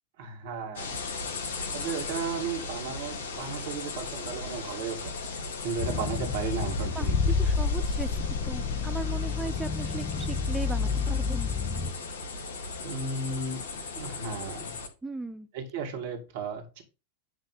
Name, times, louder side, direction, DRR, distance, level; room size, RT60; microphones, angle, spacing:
voice 1, 0.2-1.0 1.7-5.2 5.6-7.2 12.8-13.6 13.9-14.7 15.5-16.8, right 4 dB, 55° right, 2.5 m, -34 dB
sound 1, 0.8-14.9, left 3 dB, 60° left, 2.1 m, -37 dB
sound 2, 5.8-11.9, left 5 dB, 40° left, 1.0 m, -29 dB
voice 2, 7.0-11.5 15.0-15.5, right 4 dB, 10° right, 0.7 m, -38 dB
10.5 x 3.6 x 5.6 m
figure-of-eight pair, 90°, 0 cm